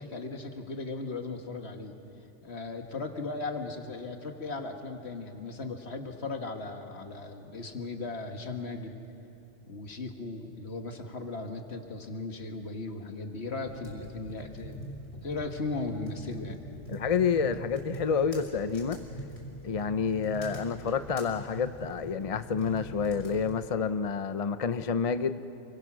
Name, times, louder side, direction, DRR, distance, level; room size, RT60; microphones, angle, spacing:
voice 1, 0.0-1.9 2.4-9.0 9.7-14.9 15.2-16.6, left 3 dB, 60° left, 5 dB, 1.9 m, -37 dB
sound 1, 13.7-23.5, equal, 90° left, 5.0 m, -44 dB
voice 2, 16.9-19.0 19.6-25.4, left 6 dB, 40° left, 11 dB, 0.5 m, -29 dB
29.0 x 23.0 x 6.3 m, 2.9 s
omnidirectional pair, 1.2 m